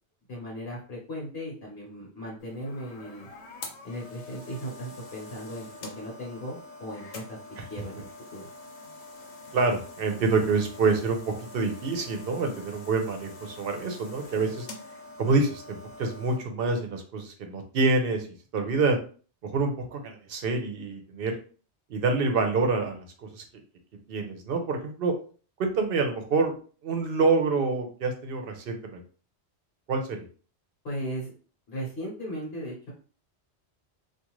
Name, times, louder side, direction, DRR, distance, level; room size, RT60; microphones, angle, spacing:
voice 1, 0.3-3.3 3.8-7.4 7.7-8.5 30.8-31.3 31.7-32.9, equal, 65° left, -3 dB, 1.1 m, -37 dB
sound 1, 2.4-16.4, left 2 dB, 90° left, 1.0 m, -45 dB
voice 2, 9.5-14.7 15.2-19.0 19.4-21.3 21.9-23.4 24.1-25.1 25.6-26.5 26.8-29.0 29.9-30.2, right 3 dB, 60° right, 4 dB, 0.8 m, -27 dB
2.4 x 2.4 x 2.9 m, 0.39 s
omnidirectional pair, 1.1 m